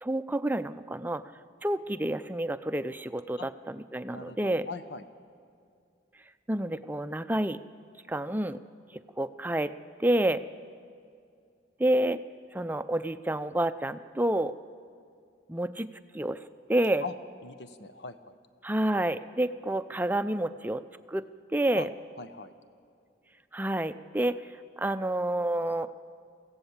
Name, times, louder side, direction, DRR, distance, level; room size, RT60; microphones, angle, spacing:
voice 1, 0.0-1.2 1.6-4.7 6.5-7.6 8.1-8.6 8.9-9.7 10.0-10.4 11.8-12.2 12.5-14.5 15.5-15.9 16.1-16.4 16.7-17.0 18.6-20.8 21.1-21.9 23.5-24.4 24.8-25.9, right 1 dB, 10° right, 11 dB, 0.5 m, -29 dB
voice 2, 4.1-5.0 17.0-17.1 17.4-18.4 21.7-21.9 22.2-22.5, left 3 dB, 75° left, 10 dB, 1.0 m, -40 dB
24.0 x 16.0 x 7.3 m, 2.4 s
head